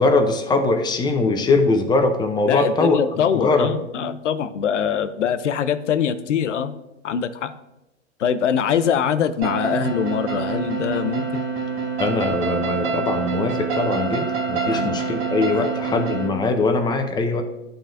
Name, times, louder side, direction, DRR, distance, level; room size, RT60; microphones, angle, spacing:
voice 1, 0.0-3.0 3.3-3.7 12.0-17.4, left 3 dB, 10° left, 5 dB, 0.6 m, -21 dB
voice 2, 2.5-6.7 7.0-7.5 8.2-11.4 14.7-15.1 15.6-15.7, left 8 dB, 85° left, 12 dB, 0.6 m, -23 dB
sound 1, 9.4-16.3, right 5 dB, 50° right, 1.3 m, -26 dB
11.5 x 3.9 x 2.5 m, 0.94 s
hypercardioid pair, 110°, 35 cm